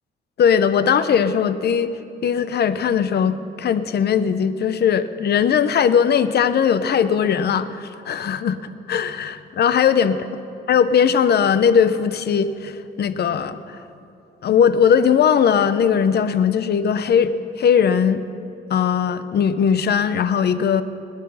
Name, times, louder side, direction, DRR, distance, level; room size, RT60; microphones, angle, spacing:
voice 1, 0.4-1.9 2.2-8.6 8.9-10.2 10.7-13.8 14.4-18.2 18.7-20.8, left 7 dB, 55° left, 13 dB, 0.8 m, -19 dB
20.0 x 9.9 x 5.6 m, 2.7 s
cardioid pair, 90°, 20 cm